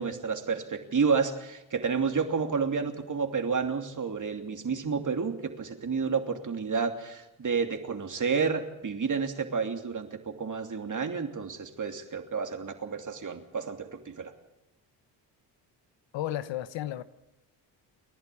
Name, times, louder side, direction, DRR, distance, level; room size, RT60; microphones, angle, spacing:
voice 1, 0.0-14.3, right 5 dB, 40° right, 2.9 m, -30 dB
voice 2, 16.1-17.0, left 13 dB, 75° left, 1.1 m, -33 dB
29.0 x 11.0 x 8.6 m
supercardioid pair, 65°, 45 cm